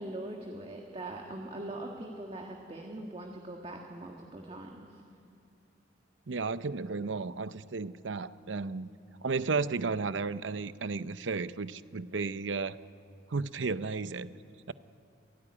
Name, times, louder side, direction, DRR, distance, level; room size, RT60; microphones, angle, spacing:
voice 1, 0.0-4.9, right 1 dB, 30° right, 1 dB, 1.8 m, -41 dB
voice 2, 6.3-8.9 9.2-12.8 13.3-14.3 14.7-14.8, right 4 dB, 80° right, 14 dB, 0.7 m, -33 dB
26.5 x 17.5 x 9.8 m, 2.5 s
head